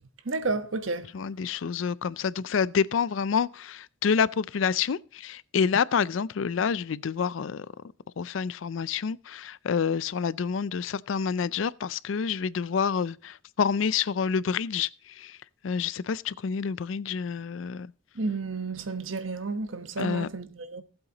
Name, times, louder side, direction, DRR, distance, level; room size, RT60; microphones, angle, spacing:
voice 1, 0.2-1.1 18.2-20.8, right 3 dB, 85° right, 1.2 m, -31 dB
voice 2, 1.1-7.7 8.2-15.4 15.6-17.9 20.0-20.3, left 6 dB, 75° left, 0.4 m, -28 dB
18.5 x 7.9 x 2.9 m
head